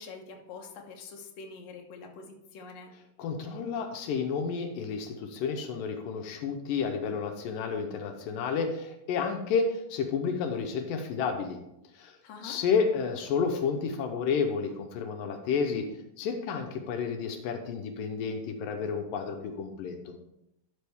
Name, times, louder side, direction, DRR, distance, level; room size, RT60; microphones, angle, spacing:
voice 1, 0.0-2.9 12.2-12.6, left 4 dB, 60° left, 1 dB, 2.0 m, -45 dB
voice 2, 3.2-11.6 11.9-12.2 12.4-15.9 16.2-20.2, left 5 dB, 80° left, 5 dB, 2.4 m, -31 dB
12.0 x 5.3 x 3.5 m, 0.83 s
omnidirectional pair, 3.9 m